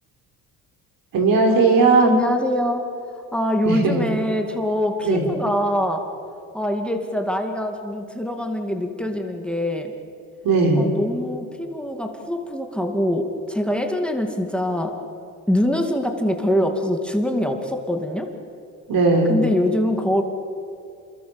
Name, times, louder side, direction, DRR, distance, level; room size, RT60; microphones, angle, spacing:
voice 1, 1.1-2.1 3.7-4.0 5.0-5.2 10.4-10.8 18.9-19.3, right 3 dB, 70° right, 3 dB, 5.6 m, -17 dB
voice 2, 2.0-2.8 3.3-6.0 6.5-9.9 10.8-14.9 15.5-18.3 19.3-20.2, left 1 dB, 5° left, 4 dB, 2.4 m, -23 dB
28.0 x 22.5 x 7.1 m, 2.5 s
cardioid pair, 100°, 35 cm